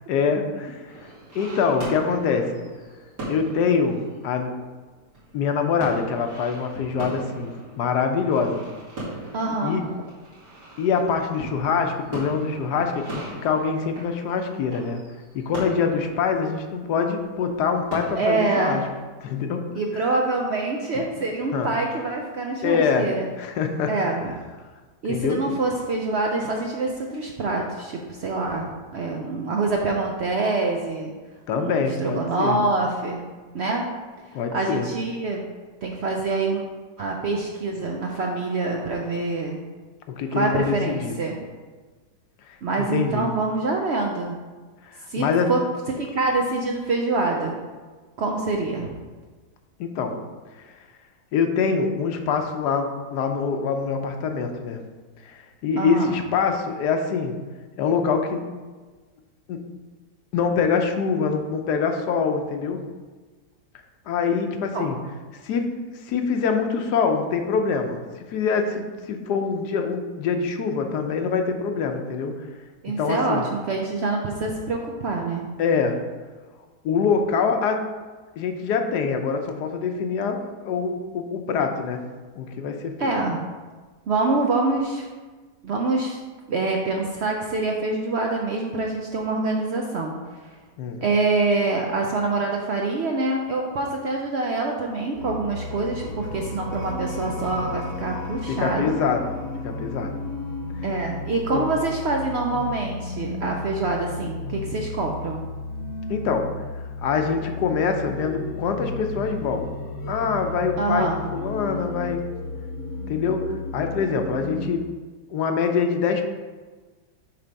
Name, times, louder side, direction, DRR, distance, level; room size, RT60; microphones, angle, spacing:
voice 1, 0.1-1.1 1.3-2.6 3.3-4.5 5.3-8.6 9.6-9.8 10.8-15.0 15.3-18.8 19.2-19.6 20.9-21.0 21.5-21.7 22.6-23.1 23.4-23.9 25.1-25.4 31.5-32.6 34.3-34.9 40.2-41.1 42.5-43.3 44.8-45.5 49.8-50.2 50.6-50.7 51.3-54.8 55.2-57.3 57.8-58.4 59.5-59.6 60.3-62.8 64.1-65.0 65.4-65.7 66.0-68.0 68.3-72.5 72.9-73.4 75.6-76.0 76.8-77.8 78.4-82.0 82.3-83.1 90.8-91.0 98.5-100.1 101.5-101.6 106.1-106.5 107.0-109.7 110.1-112.2 113.1-114.9 115.3-116.2, left 5 dB, 85° left, 5 dB, 1.3 m, -24 dB
sound 1, 0.9-19.0, right 1 dB, 90° right, 3.1 m, -39 dB
voice 2, 9.3-9.9 18.2-18.8 19.7-23.3 23.9-24.2 25.0-31.1 31.6-33.2 33.5-33.8 34.5-35.5 35.8-36.6 37.0-39.6 40.3-41.3 42.6-44.4 45.1-47.5 48.2-48.9 55.8-56.2 64.7-64.8 72.8-75.4 83.0-83.4 84.1-85.1 85.6-86.2 86.5-90.1 90.4-90.5 91.0-99.0 100.8-105.4 110.8-111.2, right 3 dB, 65° right, 1 dB, 0.6 m, -25 dB
sound 2, 95.1-114.7, left 3 dB, 60° left, 1.3 m, -33 dB
7.1 x 3.4 x 5.2 m, 1.3 s
omnidirectional pair, 1.7 m